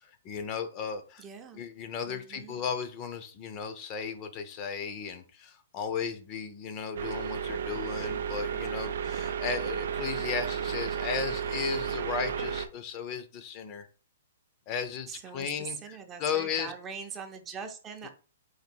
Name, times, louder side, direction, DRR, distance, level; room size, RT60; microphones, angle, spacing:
voice 1, 0.0-1.2 1.5-13.9 14.7-16.7, left 6 dB, 30° left, 0.6 m, -35 dB
voice 2, 1.2-1.6 2.0-2.6 15.1-18.1, right 6 dB, 20° right, 0.6 m, -42 dB
sound 1, 7.0-12.7, right 8 dB, 70° right, 0.4 m, -33 dB
4.0 x 2.6 x 4.5 m
hypercardioid pair, 145°, 0 cm